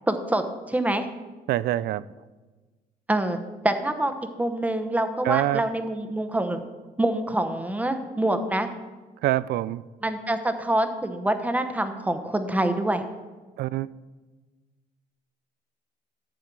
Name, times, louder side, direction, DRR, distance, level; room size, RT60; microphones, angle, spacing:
voice 1, 0.1-1.1 3.1-3.4 3.6-4.1 4.4-6.6 7.0-8.7 10.0-13.0, right 1 dB, 10° right, 8 dB, 0.9 m, -25 dB
voice 2, 1.5-2.0 5.2-5.6 9.2-9.8 13.6-13.9, right 14 dB, 70° right, 18 dB, 0.4 m, -25 dB
12.0 x 7.3 x 4.7 m, 1.3 s
cardioid pair, 110°, 17 cm